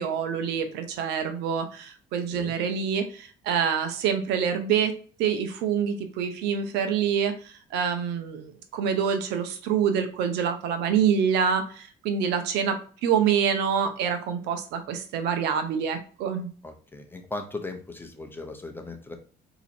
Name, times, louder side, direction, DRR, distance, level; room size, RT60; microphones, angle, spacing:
voice 1, 0.0-4.9 5.2-16.5, right 7 dB, 85° right, 8 dB, 0.8 m, -26 dB
voice 2, 16.6-19.2, left 2 dB, 10° left, 5 dB, 0.8 m, -38 dB
4.1 x 3.0 x 4.2 m, 0.41 s
cardioid pair, 110°, 17 cm